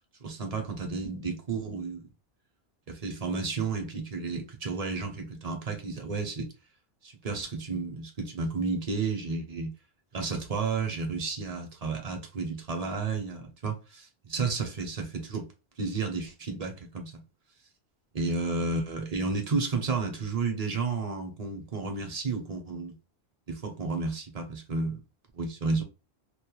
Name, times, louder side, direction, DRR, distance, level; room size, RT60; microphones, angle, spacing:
voice 1, 0.2-2.1 2.9-6.5 7.0-9.7 10.1-15.5 15.8-17.1 18.1-22.9 23.5-25.0 25.3-25.8, right 4 dB, 45° right, 0.6 m, -32 dB
2.2 x 2.1 x 2.9 m
omnidirectional pair, 1.1 m